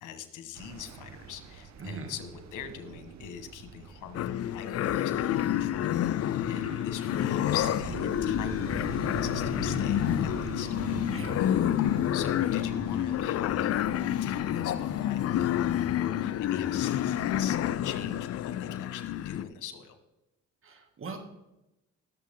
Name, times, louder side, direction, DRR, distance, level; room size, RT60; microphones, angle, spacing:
voice 1, 0.0-10.7 12.1-20.0, left 9 dB, 90° left, 9 dB, 1.6 m, -42 dB
sound 1, 0.5-18.2, right 5 dB, 65° right, 1.2 m, -43 dB
voice 2, 1.8-2.1 6.5-6.8 11.1-11.5 20.6-21.2, right 3 dB, 45° right, 4 dB, 2.4 m, -41 dB
sound 2, 4.1-19.4, left 11 dB, 55° left, 0.5 m, -29 dB
17.5 x 7.3 x 3.7 m, 0.94 s
cardioid pair, 90°, 30 cm